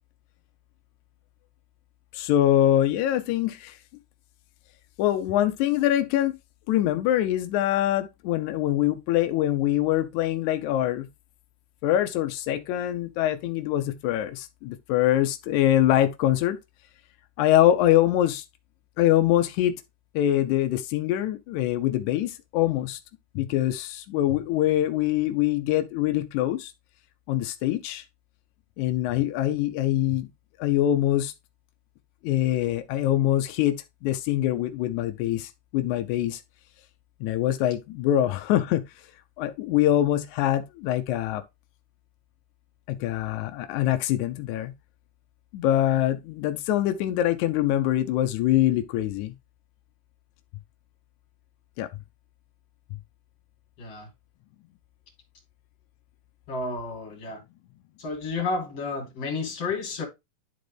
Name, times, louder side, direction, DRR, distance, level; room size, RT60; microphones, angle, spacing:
voice 1, 2.1-3.8 5.0-6.4 6.7-11.1 11.8-16.6 17.4-18.5 19.0-19.8 20.2-23.0 23.4-26.7 27.3-28.0 28.8-30.3 30.6-31.3 32.2-36.4 37.2-38.8 39.4-41.4 42.9-44.7 45.5-49.3 51.8-51.9, left 13 dB, 85° left, 1.7 m, -24 dB
voice 2, 53.8-54.1 56.5-57.4 58.0-60.0, left 3 dB, 45° left, 3.2 m, -31 dB
11.0 x 4.0 x 3.3 m
omnidirectional pair, 4.1 m